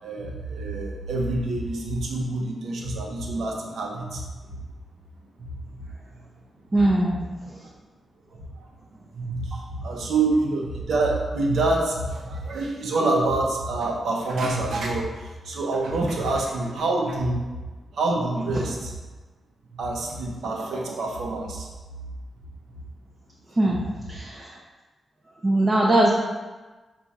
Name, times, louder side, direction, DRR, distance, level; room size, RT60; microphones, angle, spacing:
voice 1, 0.0-4.2 4.5-4.6 7.5-7.6 8.3-8.7 9.1-17.6 17.9-18.9 19.7-21.7, right 2 dB, 85° right, -1 dB, 0.7 m, -26 dB
voice 2, 6.7-7.2 23.6-23.8 24.1-24.5 25.4-26.1, right 1 dB, 20° right, -4 dB, 0.5 m, -20 dB
4.1 x 2.5 x 4.7 m, 1.2 s
wide cardioid pair, 150°, 0 cm